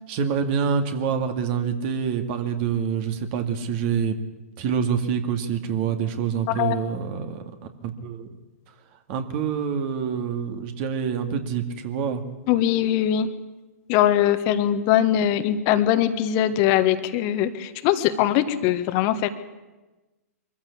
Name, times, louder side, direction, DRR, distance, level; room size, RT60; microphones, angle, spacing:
voice 1, 0.1-4.2 4.6-7.4 7.8-8.3 9.1-12.2, right 7 dB, 45° right, 7 dB, 2.2 m, -26 dB
voice 2, 12.5-13.3 13.9-19.3, left 11 dB, 40° left, 10 dB, 1.4 m, -21 dB
23.0 x 14.5 x 8.7 m, 1.1 s
figure-of-eight pair, 115°, 8 cm